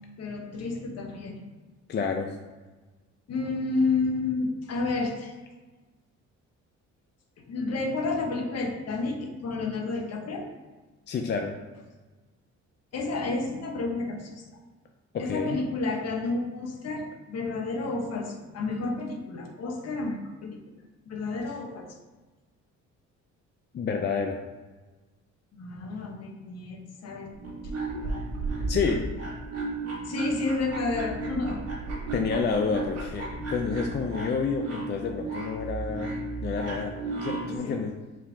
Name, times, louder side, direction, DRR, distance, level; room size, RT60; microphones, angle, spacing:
voice 1, 0.2-1.4 3.3-5.3 7.4-10.5 12.9-14.4 15.2-20.6 21.1-21.9 25.5-27.8 30.0-31.6 37.5-37.9, left 3 dB, 55° left, 3 dB, 0.8 m, -31 dB
voice 2, 1.9-2.3 11.1-11.6 15.1-15.6 23.7-24.4 28.7-29.0 32.1-36.2 36.4-38.0, left 5 dB, 35° left, 3 dB, 0.4 m, -29 dB
sound 1, 27.3-37.6, right 2 dB, 55° right, 1.2 m, -34 dB
5.0 x 3.5 x 2.7 m, 1.2 s
cardioid pair, 90°, 30 cm